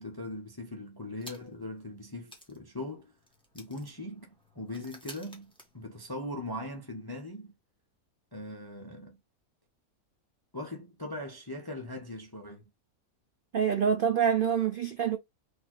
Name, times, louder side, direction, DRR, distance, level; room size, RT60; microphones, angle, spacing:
voice 1, 0.0-3.1 3.5-7.5 8.3-9.2 10.5-12.6, left 1 dB, 30° left, 0.4 m, -40 dB
sound 1, 1.2-1.7 2.0-2.1 2.3-6.4, equal, 5° left, 1.2 m, -52 dB
voice 2, 13.5-15.2, right 7 dB, 65° right, 0.5 m, -26 dB
4.2 x 2.7 x 4.5 m
omnidirectional pair, 1.6 m